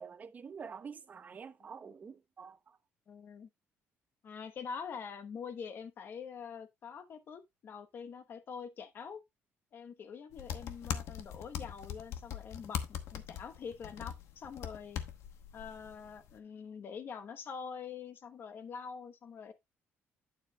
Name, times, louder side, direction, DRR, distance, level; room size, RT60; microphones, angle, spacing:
voice 1, 0.0-2.8, right 6 dB, 35° right, 0.8 m, -47 dB
voice 2, 3.1-3.5 4.2-9.2 9.7-12.8 13.1-15.0 15.5-19.5, left 6 dB, 50° left, 1.1 m, -45 dB
sound 1, 10.3-16.4, left 9 dB, 75° left, 1.0 m, -41 dB
9.3 x 7.2 x 2.2 m
cardioid pair, 115°, 5 cm